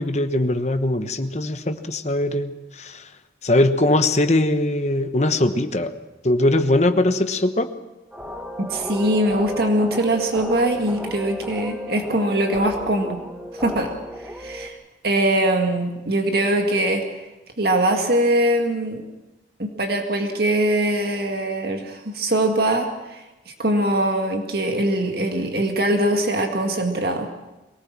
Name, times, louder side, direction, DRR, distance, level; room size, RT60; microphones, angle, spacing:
voice 1, 0.0-3.1 3.4-5.9 6.2-7.7, left 1 dB, 35° left, 9 dB, 1.1 m, -21 dB
sound 1, 8.1-14.7, equal, 5° right, 1.2 m, -34 dB
voice 2, 8.6-13.2 13.5-13.9 14.2-14.8 15.0-17.0 17.6-19.0 19.6-23.2 23.6-27.3, right 1 dB, 55° right, 4 dB, 2.0 m, -22 dB
23.0 x 18.5 x 7.5 m, 1.0 s
head